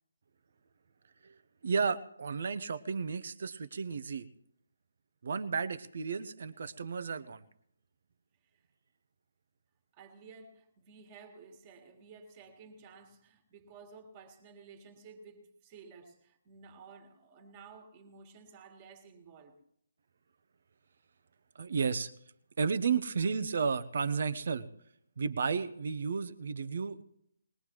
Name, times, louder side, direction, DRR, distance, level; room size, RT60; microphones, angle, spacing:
voice 1, 1.6-4.3 5.2-7.4 21.6-22.1 22.6-24.7 25.2-27.0, right 5 dB, 50° right, 0.9 m, -33 dB
voice 2, 9.9-19.7, right 5 dB, 25° right, 2.0 m, -54 dB
21.0 x 20.5 x 3.1 m
figure-of-eight pair, 145°, 0 cm